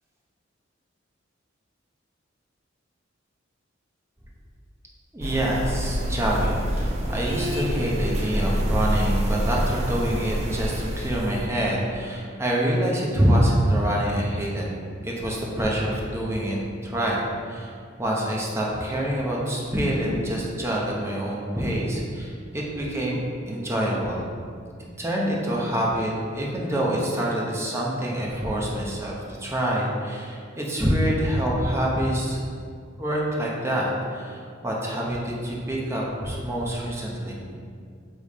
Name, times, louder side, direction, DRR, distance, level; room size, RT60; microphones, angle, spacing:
voice 1, 5.1-14.7 15.0-16.6 16.8-17.7 18.0-24.3 25.0-32.4 33.0-37.4, right 1 dB, 15° right, -4 dB, 1.0 m, -26 dB
sound 1, 5.2-11.5, equal, 35° right, 0.6 m, -27 dB
7.1 x 3.4 x 4.2 m, 2.2 s
head